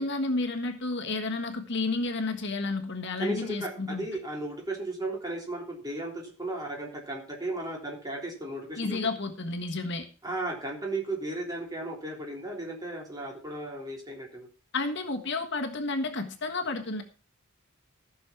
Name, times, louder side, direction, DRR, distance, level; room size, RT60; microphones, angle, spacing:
voice 1, 0.0-4.1 8.8-10.0 14.7-17.0, left 3 dB, 55° left, 5 dB, 1.5 m, -31 dB
voice 2, 3.2-9.0 10.2-14.5, right 1 dB, 20° right, 0 dB, 3.4 m, -35 dB
14.5 x 6.4 x 5.9 m, 0.35 s
head